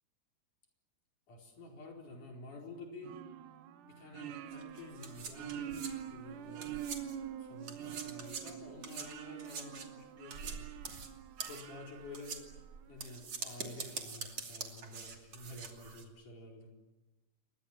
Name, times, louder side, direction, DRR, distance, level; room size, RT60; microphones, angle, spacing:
voice 1, 1.3-3.2 3.8-6.8 7.4-10.7 11.4-12.5 12.9-16.7, left 2 dB, 70° left, 0 dB, 6.0 m, -50 dB
sound 1, 3.1-12.9, right 10 dB, 75° right, 2.7 m, -46 dB
sound 2, 4.5-7.3 7.6-16.0, right 5 dB, 50° right, 3.7 m, -45 dB
29.0 x 24.0 x 7.4 m, 1.1 s
omnidirectional pair, 3.7 m